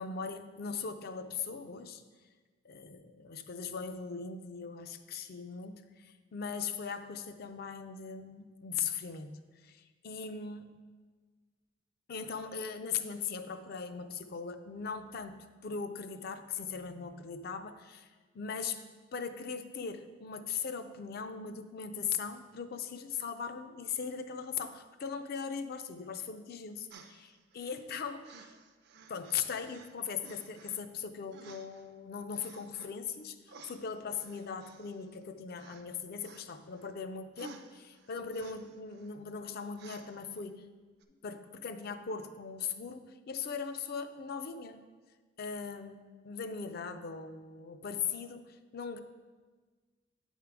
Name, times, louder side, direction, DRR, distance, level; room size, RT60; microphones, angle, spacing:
voice 1, 0.0-2.0 2.6-10.7 12.1-18.8 19.1-28.5 29.1-33.4 33.7-40.6 41.2-44.9 45.4-49.0, left 6 dB, 50° left, 9 dB, 0.4 m, -39 dB
sound 1, 26.9-27.9 28.2-29.9 30.2-30.8 31.3-31.9 32.3-32.9 33.5-35.3 35.6-35.9 36.2-36.9 37.4-39.1 39.8-40.4 41.0-41.1, right 4 dB, 55° right, 0.4 m, -54 dB
8.8 x 3.6 x 4.6 m, 1.4 s
head